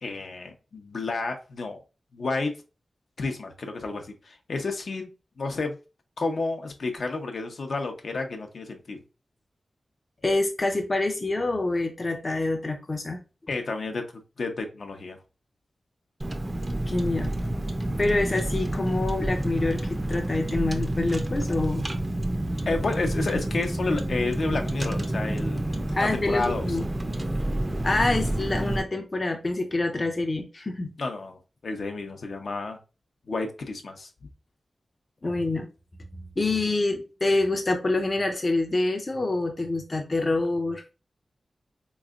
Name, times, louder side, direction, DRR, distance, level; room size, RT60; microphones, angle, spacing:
voice 1, 0.0-1.8 2.1-2.5 3.2-5.1 5.4-5.8 6.2-9.0 13.5-14.0 14.4-15.2 22.7-25.6 26.0-26.7 31.0-32.8 33.3-34.1, left 3 dB, 70° left, 4 dB, 0.7 m, -30 dB
voice 2, 10.2-13.2 16.9-17.3 18.0-21.9 25.9-26.8 27.8-30.9 35.2-35.7 36.1-40.9, left 2 dB, 35° left, 4 dB, 0.6 m, -26 dB
Car, 16.2-28.8, right 1 dB, 25° right, 0.5 m, -29 dB
3.6 x 3.1 x 2.4 m, 0.31 s
wide cardioid pair, 100°, 0 cm